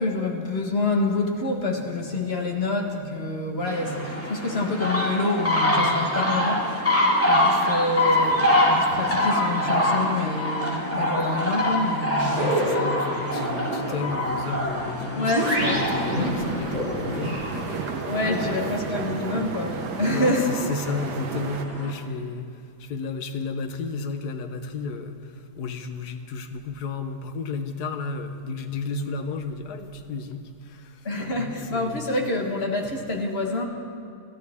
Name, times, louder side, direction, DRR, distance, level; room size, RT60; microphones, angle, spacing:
voice 1, 0.0-6.8 7.3-12.5 15.2-15.8 18.1-20.5 31.0-33.7, left 2 dB, 40° left, 2 dB, 1.5 m, -27 dB
sound 1, 3.7-21.9, left 1 dB, 10° left, 2.2 m, -26 dB
voice 2, 12.2-17.8 18.2-18.7 20.0-22.5 22.8-25.2 25.6-30.4 31.2-32.1, left 4 dB, 75° left, 7 dB, 1.4 m, -32 dB
sound 2, 12.2-18.5, right 1 dB, 60° right, 2.9 m, -29 dB
sound 3, 15.6-21.6, right 7 dB, 85° right, 1.4 m, -34 dB
26.0 x 13.0 x 3.6 m, 2.3 s
omnidirectional pair, 1.7 m